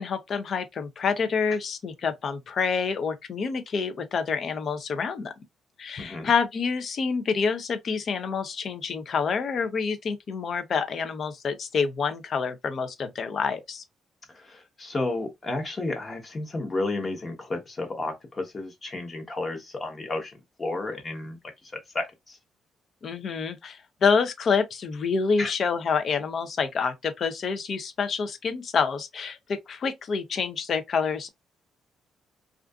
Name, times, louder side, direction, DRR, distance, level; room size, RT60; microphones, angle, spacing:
voice 1, 0.0-5.3 5.8-13.8 23.0-31.3, left 5 dB, 55° left, 0.5 m, -27 dB
voice 2, 6.0-6.3 14.3-22.4 25.4-25.5, left 2 dB, 30° left, 1.0 m, -32 dB
2.4 x 2.4 x 2.3 m
cardioid pair, 90°, 0 cm